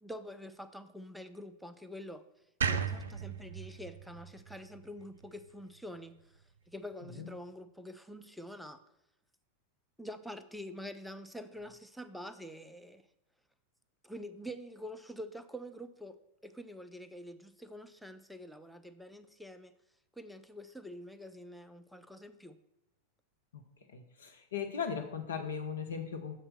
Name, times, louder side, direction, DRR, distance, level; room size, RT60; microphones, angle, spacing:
voice 1, 0.0-2.2 2.6-8.8 10.0-13.0 14.0-16.2 16.4-19.7 20.2-22.6, equal, ahead, 10 dB, 0.4 m, -46 dB
sound 1, 2.6-5.8, right 6 dB, 65° right, 0.4 m, -36 dB
voice 2, 23.9-26.4, left 7 dB, 65° left, 5 dB, 0.7 m, -38 dB
6.6 x 4.4 x 6.5 m, 0.86 s
figure-of-eight pair, 90°, 0 cm